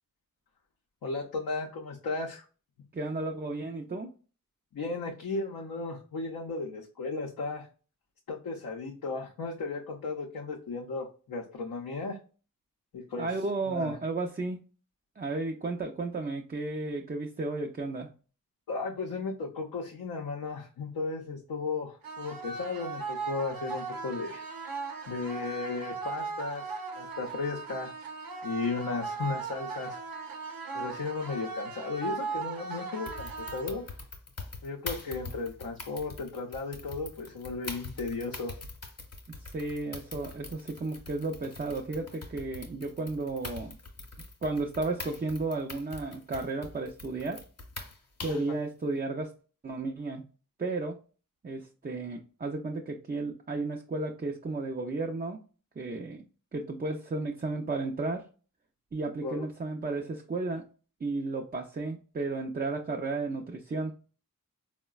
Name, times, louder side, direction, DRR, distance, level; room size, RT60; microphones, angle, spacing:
voice 1, 1.0-2.4 4.7-7.7 8.3-12.2 12.9-13.3 13.7-13.9 18.7-24.4 25.1-27.9 28.4-30.0 30.7-33.8 34.6-38.5 59.2-59.5, left 4 dB, 80° left, 0 dB, 0.5 m, -35 dB
voice 2, 2.9-4.1 13.2-14.6 15.2-18.1 39.4-43.8 44.4-47.4 48.2-49.3 49.6-50.2 50.6-51.0 51.4-55.4 55.8-56.3 56.5-58.2 58.9-60.6 61.0-63.9, right 3 dB, 30° right, 2 dB, 0.4 m, -33 dB
sound 1, 22.0-34.0, right 4 dB, 75° right, 0.7 m, -38 dB
sound 2, 33.1-48.5, left 3 dB, 45° left, 0.8 m, -44 dB
3.7 x 2.1 x 2.3 m, 0.37 s
cardioid pair, 40°, 35 cm